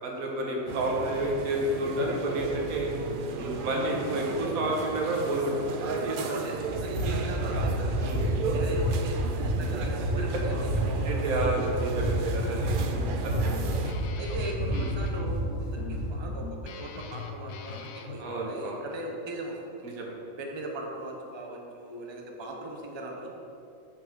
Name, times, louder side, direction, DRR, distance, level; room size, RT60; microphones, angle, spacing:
voice 1, 0.0-2.9 3.3-6.4 7.0-7.1 7.4-7.5 8.0-8.2 9.8-9.9 10.2-10.4 11.0-12.8 13.2-13.5 14.7-14.9 18.2-18.8 19.8-20.1, right 1 dB, 90° right, -1 dB, 1.5 m, -30 dB
sound 1, 0.7-13.9, right 3 dB, 65° right, 0.5 m, -35 dB
voice 2, 6.2-6.6 6.8-8.0 8.4-11.1 12.4-13.5 14.2-16.5 16.8-19.9 20.4-23.3, right 2 dB, 25° right, 0 dB, 0.7 m, -39 dB
Run, 6.7-16.1, right 1 dB, 40° left, 1.8 m, -29 dB
Guitar, 12.4-18.2, left 5 dB, 80° left, 1.0 m, -41 dB
6.3 x 4.7 x 5.9 m, 2.7 s
omnidirectional pair, 1.5 m